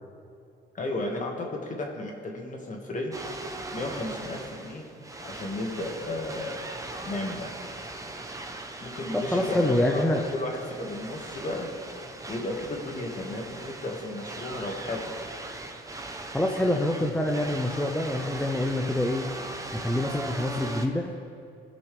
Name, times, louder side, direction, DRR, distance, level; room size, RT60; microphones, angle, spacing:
voice 1, 0.7-3.3 3.7-4.9 5.2-6.5 7.0-7.5 8.8-11.7 12.3-15.1, left 2 dB, 40° left, 1 dB, 1.8 m, -33 dB
sound 1, 3.1-20.9, right 2 dB, 15° right, 0.9 m, -39 dB
voice 2, 9.1-10.2 16.3-19.3 19.7-21.1, left 1 dB, 5° left, 1 dB, 0.6 m, -26 dB
18.0 x 6.2 x 3.4 m, 2.5 s
cardioid pair, 90°, 20 cm